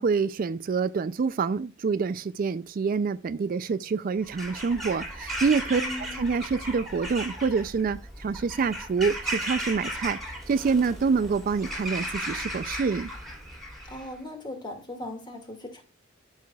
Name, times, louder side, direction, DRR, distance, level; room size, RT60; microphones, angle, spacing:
voice 1, 0.0-5.8 6.2-10.2 10.5-13.1, right 5 dB, 45° right, 0.3 m, -26 dB
Bird vocalization bird call bird song / Crow, 4.2-14.1, right 1 dB, ahead, 2.4 m, -35 dB
voice 2, 5.8-6.2 13.9-15.8, left 1 dB, 20° left, 2.0 m, -38 dB
12.5 x 5.7 x 2.3 m
head